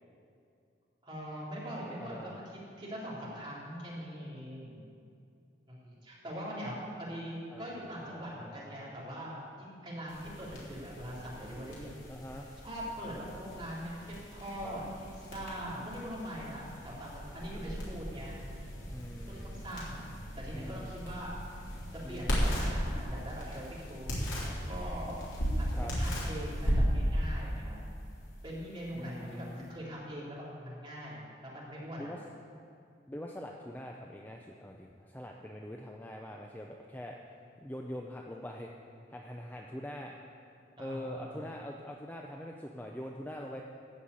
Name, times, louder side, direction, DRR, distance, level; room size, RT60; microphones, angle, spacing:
voice 1, 1.0-4.8 5.7-11.9 12.6-14.8 15.3-18.4 19.3-20.1 20.4-21.3 22.1-25.3 25.6-27.8 28.4-32.1 40.8-41.4, equal, 25° right, -7 dB, 3.3 m, -42 dB
voice 2, 2.0-2.4 7.5-9.0 12.1-12.5 14.6-14.8 18.9-19.6 20.5-21.0 22.0-22.4 25.8-25.9 28.9-29.7 32.0-32.2 33.1-37.2 37.6-38.7 39.1-40.2 40.8-43.6, left 1 dB, 10° left, 0 dB, 0.5 m, -44 dB
sound 1, 10.1-29.7, equal, 80° left, 3.5 m, -36 dB
15.0 x 5.7 x 8.3 m, 2.5 s
head